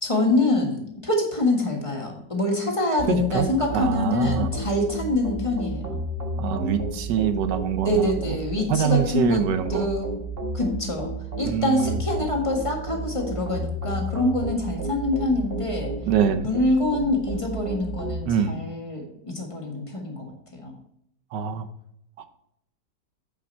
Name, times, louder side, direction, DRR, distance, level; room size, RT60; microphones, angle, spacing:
voice 1, 0.0-6.0 7.8-9.4 9.7-10.1 10.5-11.1 11.4-15.9 16.4-20.7, left 2 dB, 20° left, 0 dB, 1.6 m, -25 dB
sound 1, 3.0-18.2, right 2 dB, 35° right, 1.5 m, -32 dB
voice 2, 3.1-3.5 3.7-4.5 6.4-8.1 8.7-9.9 11.4-12.0 16.1-16.5 18.3-18.6 21.3-21.7, right 8 dB, 75° right, 10 dB, 1.3 m, -24 dB
8.7 x 5.9 x 4.4 m, 0.74 s
omnidirectional pair, 1.9 m